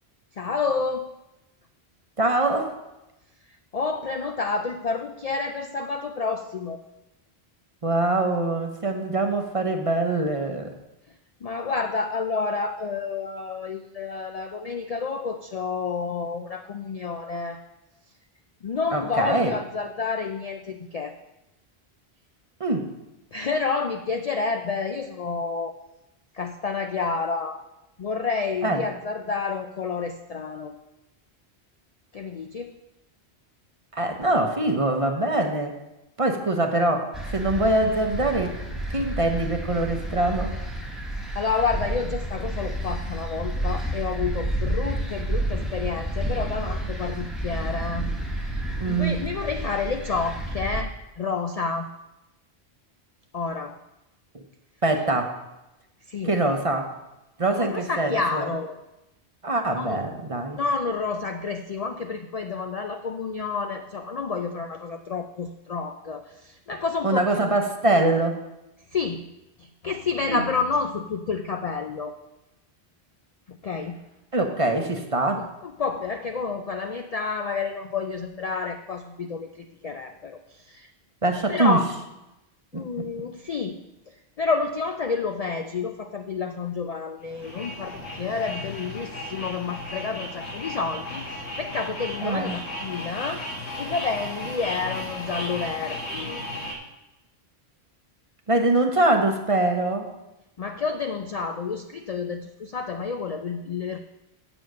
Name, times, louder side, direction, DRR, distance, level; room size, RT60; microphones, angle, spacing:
voice 1, 0.3-1.0 3.7-6.8 11.4-17.6 18.6-21.2 23.3-25.8 26.3-27.6 28.0-30.8 32.1-32.7 41.1-51.9 53.3-53.8 56.1-56.3 57.6-58.7 59.8-60.0 60.5-67.6 68.9-69.3 69.6-72.2 73.5-74.0 75.4-80.9 81.5-81.8 82.7-83.8 84.1-93.4 93.8-96.4 100.6-104.0, left 4 dB, 55° left, 6 dB, 0.4 m, -29 dB
voice 2, 2.2-2.7 7.8-10.7 18.9-19.5 22.6-22.9 28.6-28.8 33.9-35.7 36.2-38.6 38.9-40.6 48.8-49.2 54.8-55.4 56.2-56.9 57.4-58.5 59.4-60.6 67.0-68.4 70.3-70.4 74.3-75.5 81.2-81.8 82.7-83.1 92.2-92.6 98.5-100.1, right 2 dB, 35° right, 4 dB, 0.8 m, -23 dB
seagulls lake wind, 37.1-50.8, right 1 dB, ahead, 1.1 m, -30 dB
sound 1, 87.2-96.7, left 1 dB, 80° left, 2.0 m, -35 dB
7.0 x 7.0 x 6.3 m, 0.95 s
omnidirectional pair, 1.1 m